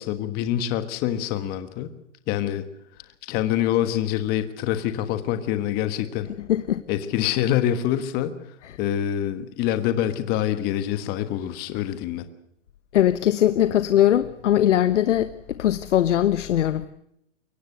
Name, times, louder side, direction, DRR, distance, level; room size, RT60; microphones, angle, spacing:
voice 1, 0.0-1.9 2.3-2.6 3.3-6.3 6.9-8.3 8.8-12.2, left 11 dB, 25° left, 1.4 m, -25 dB
voice 2, 6.5-6.8 12.9-16.9, left 11 dB, 75° left, 1.1 m, -20 dB
23.0 x 17.5 x 8.1 m
hypercardioid pair, 155°, 36 cm